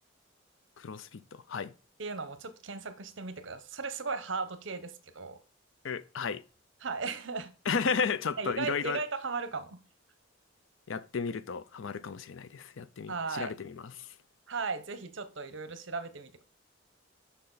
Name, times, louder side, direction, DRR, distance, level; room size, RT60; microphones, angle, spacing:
voice 1, 0.8-1.7 5.8-6.4 7.7-9.0 10.9-14.1, left 5 dB, 70° left, 0.5 m, -33 dB
voice 2, 2.0-5.4 6.8-7.5 8.4-9.8 13.1-13.5 14.5-16.4, right 4 dB, 65° right, 0.9 m, -36 dB
6.7 x 5.6 x 3.9 m
head